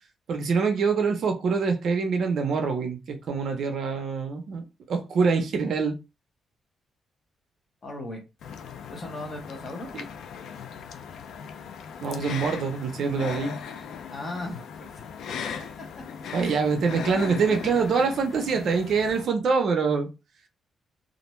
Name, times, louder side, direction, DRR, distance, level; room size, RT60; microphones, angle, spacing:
voice 1, 0.3-6.0 9.9-10.1 12.0-13.6 16.3-20.1, right 5 dB, 60° right, 0.5 m, -25 dB
voice 2, 7.8-8.2 8.9-9.9 14.1-14.6 16.2-16.3, left 2 dB, 30° left, 0.8 m, -36 dB
sound 1, 8.4-19.3, left 7 dB, 70° left, 0.3 m, -38 dB
2.5 x 2.1 x 2.9 m
cardioid pair, 160°, 0 cm